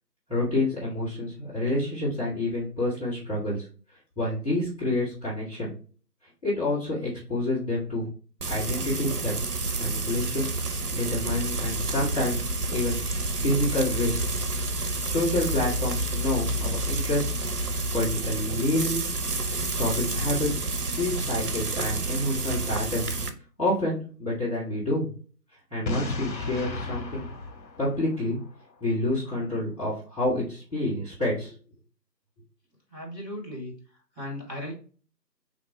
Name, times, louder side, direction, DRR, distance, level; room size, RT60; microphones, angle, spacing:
voice 1, 0.3-3.6 4.2-5.7 6.4-8.1 8.5-9.3 9.8-10.5 10.9-12.4 12.7-14.2 15.0-17.4 17.9-19.0 19.7-20.5 20.8-23.1 23.6-25.1 25.7-27.3 27.8-28.4 28.8-31.5, left 1 dB, 20° left, -12 dB, 1.8 m, -28 dB
Frying (food), 8.4-23.3, right 2 dB, 65° right, 0.7 m, -29 dB
Boom, 25.9-28.7, left 2 dB, 90° left, 1.0 m, -34 dB
voice 2, 32.9-33.7 34.1-34.7, left 1 dB, ahead, -18 dB, 1.9 m, -36 dB
4.3 x 2.9 x 3.1 m, 0.39 s
figure-of-eight pair, 170°, 50 cm